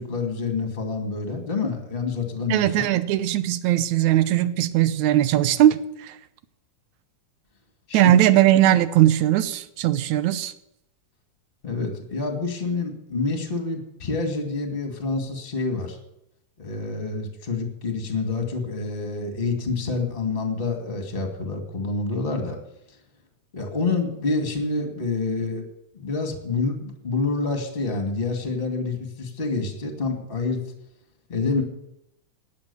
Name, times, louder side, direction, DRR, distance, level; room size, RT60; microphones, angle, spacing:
voice 1, 0.0-2.9 7.9-8.3 11.6-16.0 16.6-22.6 23.5-25.7 25.9-30.6 31.3-31.6, left 3 dB, 20° left, 4 dB, 2.1 m, -27 dB
voice 2, 2.5-6.2 7.9-10.5, right 13 dB, 75° right, 14 dB, 2.2 m, -19 dB
17.0 x 10.5 x 7.0 m, 0.85 s
omnidirectional pair, 3.4 m